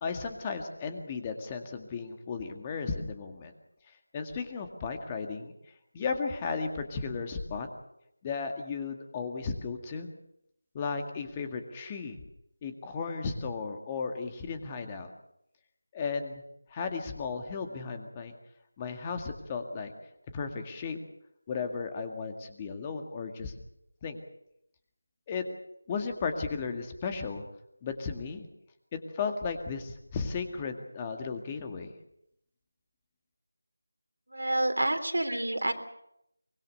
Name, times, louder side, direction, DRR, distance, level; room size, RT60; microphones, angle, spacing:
voice 1, 0.0-3.5 4.1-5.5 5.9-7.7 8.2-10.1 10.7-12.2 12.6-15.1 15.9-16.4 16.7-18.3 18.8-19.9 20.3-21.0 21.5-23.5 24.0-24.2 25.3-25.5 25.9-27.4 27.8-28.5 28.9-31.9, left 5 dB, 15° left, 6 dB, 2.0 m, -35 dB
voice 2, 34.3-35.7, right 1 dB, 80° right, 7 dB, 3.4 m, -28 dB
24.0 x 21.0 x 6.8 m, 0.77 s
figure-of-eight pair, 170°, 0 cm